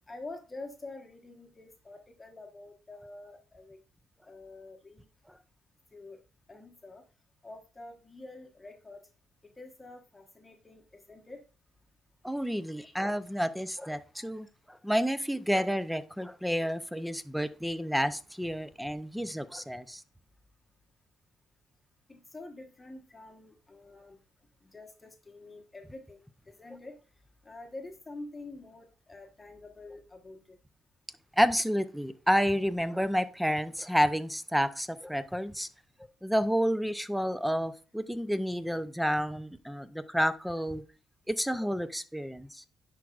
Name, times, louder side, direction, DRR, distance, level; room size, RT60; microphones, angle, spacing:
voice 1, 0.1-3.8 4.3-5.0 5.9-6.2 6.5-7.0 7.4-9.0 9.6-11.4 12.8-12.9 22.1-24.2 24.6-26.2 26.5-27.0 27.4-30.6, left 2 dB, 20° left, 1.2 m, -47 dB
voice 2, 12.2-20.0 31.3-35.7 36.2-40.8 41.3-42.6, equal, ahead, 0.6 m, -30 dB
10.5 x 4.7 x 2.4 m
cardioid pair, 90°, 0 cm